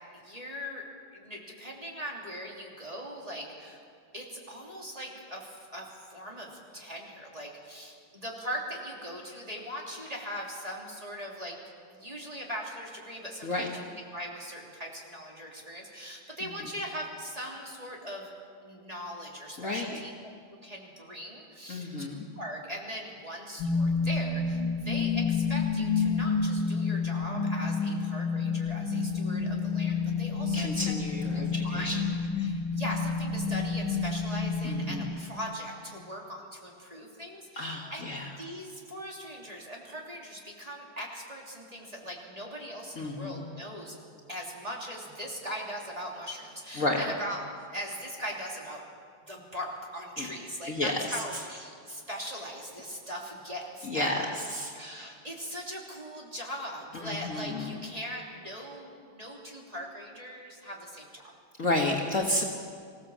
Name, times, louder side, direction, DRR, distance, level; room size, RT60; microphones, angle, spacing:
voice 1, 0.1-0.8 1.1-3.8 4.1-11.5 11.9-18.3 18.6-20.1 20.6-21.9 22.3-30.9 31.3-44.0 44.3-47.4 47.7-48.8 49.2-54.4 54.7-61.3, equal, 20° right, -2 dB, 3.0 m, -40 dB
voice 2, 19.6-20.0 21.7-22.2 30.5-32.0 34.6-35.0 37.6-38.3 43.0-43.5 46.8-47.0 50.2-50.3 50.7-51.0 53.9-54.1 54.5-54.7 57.0-57.7 61.6-62.4, left 2 dB, 45° left, 0 dB, 1.8 m, -31 dB
sound 1, 23.6-35.6, left 4 dB, 90° left, 2.1 m, -29 dB
25.0 x 16.0 x 7.3 m, 2.2 s
omnidirectional pair, 2.2 m